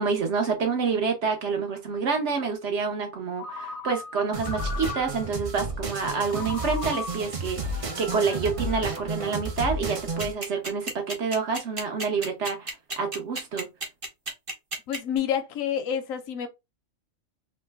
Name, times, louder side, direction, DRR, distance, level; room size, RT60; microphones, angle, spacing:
voice 1, 0.0-13.7, right 5 dB, 60° right, 1.1 m, -28 dB
Ringtone, 3.4-5.5 6.3-9.6, left 3 dB, 40° left, 0.5 m, -39 dB
sound 1, 4.3-10.3, right 2 dB, 45° right, 0.4 m, -32 dB
sound 2, 10.2-15.2, right 2 dB, 25° right, 0.9 m, -32 dB
voice 2, 14.9-16.5, left 8 dB, 80° left, 1.0 m, -28 dB
3.1 x 2.1 x 3.3 m
omnidirectional pair, 1.4 m